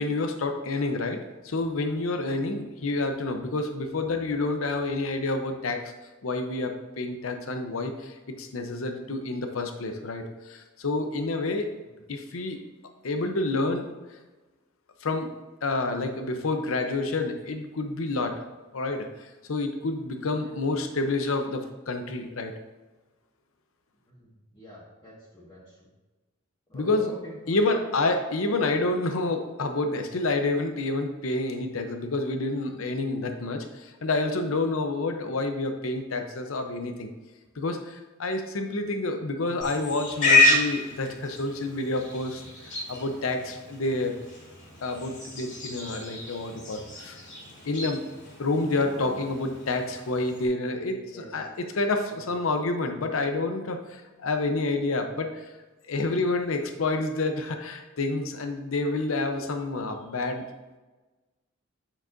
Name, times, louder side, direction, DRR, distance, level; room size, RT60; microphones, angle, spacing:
voice 1, 0.0-5.9 6.2-11.7 12.1-12.6 13.0-13.9 15.0-15.3 15.6-18.4 18.7-22.5 26.7-27.1 27.5-37.1 37.6-42.4 42.9-44.1 44.8-47.2 47.6-48.0 48.4-55.5 55.9-60.4, left 2 dB, 80° left, 6 dB, 0.7 m, -28 dB
voice 2, 24.1-25.9 26.7-27.9 33.5-33.6 43.0-43.2 50.9-51.3, equal, 20° left, -9 dB, 1.5 m, -45 dB
Livestock farm animals working animals, 39.6-50.5, left 2 dB, 60° left, 2.5 m, -29 dB
8.9 x 6.8 x 2.6 m, 1.2 s
head